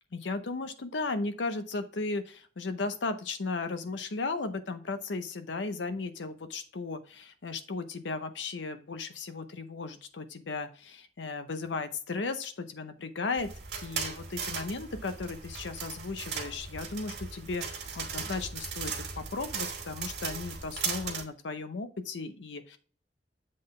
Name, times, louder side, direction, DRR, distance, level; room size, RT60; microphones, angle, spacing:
voice 1, 0.1-13.5 13.8-22.8, left 3 dB, 90° left, 9 dB, 0.7 m, -36 dB
sound 1, 13.4-21.2, right 6 dB, 70° right, 1.9 m, -37 dB
7.6 x 3.8 x 3.7 m, 0.40 s
head